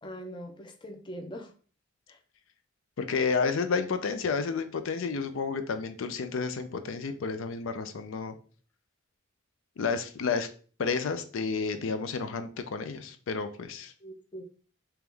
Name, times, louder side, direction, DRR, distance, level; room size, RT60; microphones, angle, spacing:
voice 1, 0.0-1.5 2.1-2.2 14.0-14.4, equal, 25° left, 4 dB, 0.5 m, -42 dB
voice 2, 3.0-8.3 9.8-10.5 10.8-13.9, left 5 dB, 75° left, 9 dB, 0.4 m, -31 dB
3.5 x 2.9 x 3.4 m, 0.40 s
head